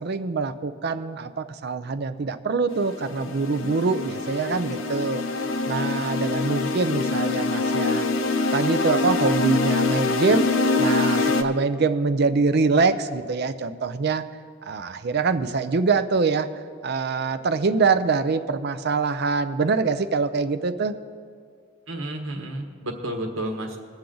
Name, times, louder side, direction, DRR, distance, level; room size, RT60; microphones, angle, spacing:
voice 1, 0.0-5.2 5.7-8.1 8.5-10.5 10.8-14.3 14.6-16.5 16.8-20.9, right 4 dB, 50° right, 11 dB, 0.5 m, -24 dB
sound 1, 2.7-11.4, left 3 dB, 80° left, 0.7 m, -24 dB
voice 2, 21.9-23.8, right 1 dB, 75° right, 3 dB, 1.4 m, -32 dB
21.0 x 7.2 x 3.9 m, 2.1 s
head